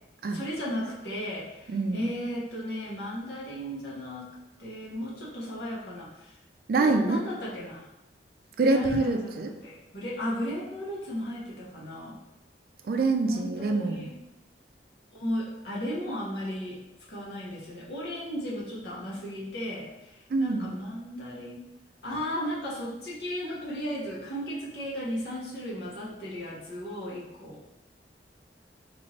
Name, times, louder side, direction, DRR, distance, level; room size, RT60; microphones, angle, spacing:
voice 1, 0.3-4.3 4.6-6.3 6.7-7.8 8.6-9.2 9.6-12.2 13.3-14.1 15.1-16.8 17.1-20.1 20.4-21.7 22.0-27.6, equal, 65° left, -6 dB, 1.1 m, -35 dB
voice 2, 1.7-2.1 6.7-7.3 8.6-9.6 12.8-14.1 20.3-20.8, right 3 dB, 55° right, 5 dB, 0.4 m, -25 dB
3.3 x 2.8 x 3.0 m, 0.90 s
head